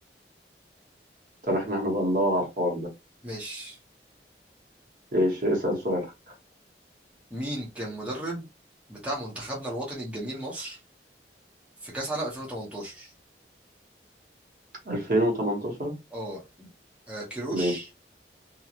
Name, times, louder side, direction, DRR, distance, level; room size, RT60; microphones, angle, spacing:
voice 1, 1.4-2.9 5.1-6.1 14.9-15.9 17.5-17.7, equal, 50° right, 1.0 m, -26 dB
voice 2, 3.2-3.8 7.3-8.5 8.9-10.8 11.8-13.1 16.1-16.7 17.1-17.9, right 1 dB, 5° right, 0.9 m, -34 dB
2.9 x 2.3 x 2.4 m
head